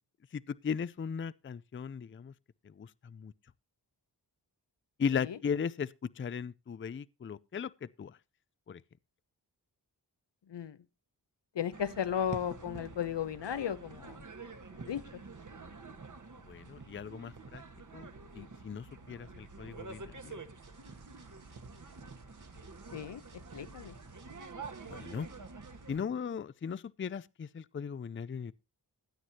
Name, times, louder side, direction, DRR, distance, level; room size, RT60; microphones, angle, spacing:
voice 1, 0.3-2.3 2.6-3.3 5.0-8.2 8.7-8.8 16.5-17.6 17.9-18.1 18.3-20.4 24.9-25.3 25.9-28.5, left 6 dB, 30° left, 0.5 m, -37 dB
voice 2, 11.5-14.2 14.8-15.0 22.9-23.2 23.5-23.9, left 9 dB, 80° left, 1.0 m, -35 dB
sound 1, 11.7-26.0, right 4 dB, 45° right, 1.5 m, -48 dB
sound 2, 20.6-25.9, right 3 dB, 65° right, 3.9 m, -60 dB
16.0 x 9.4 x 2.8 m
wide cardioid pair, 70°, 42 cm